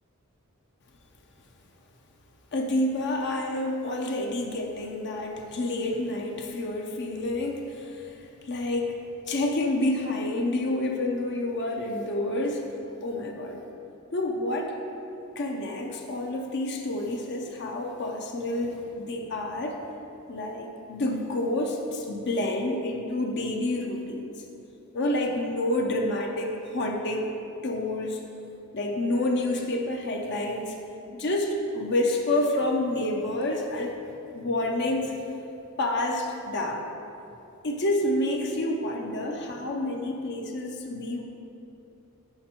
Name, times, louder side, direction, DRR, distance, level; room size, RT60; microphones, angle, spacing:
voice 1, 2.5-9.0 9.3-12.6 13.0-13.6 14.1-14.7 15.4-19.8 20.3-24.3 24.9-27.3 27.6-28.2 28.7-30.8 31.1-33.9 34.3-35.2 35.8-36.8 37.6-41.2, left 1 dB, 50° left, 1 dB, 0.6 m, -28 dB
6.7 x 5.8 x 4.3 m, 2.8 s
head